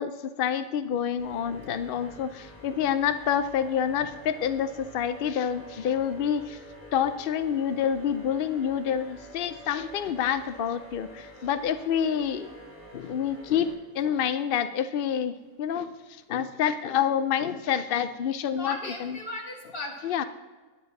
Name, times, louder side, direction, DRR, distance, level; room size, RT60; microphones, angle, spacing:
voice 1, 0.0-6.6 6.9-12.5 12.9-19.2 20.0-20.2, left 8 dB, 65° left, 11 dB, 0.5 m, -28 dB
sound 1, 1.2-13.7, equal, 10° left, 4.3 m, -48 dB
voice 2, 18.5-20.3, left 2 dB, 40° left, 1 dB, 2.2 m, -37 dB
10.0 x 9.8 x 5.9 m, 1.3 s
omnidirectional pair, 1.5 m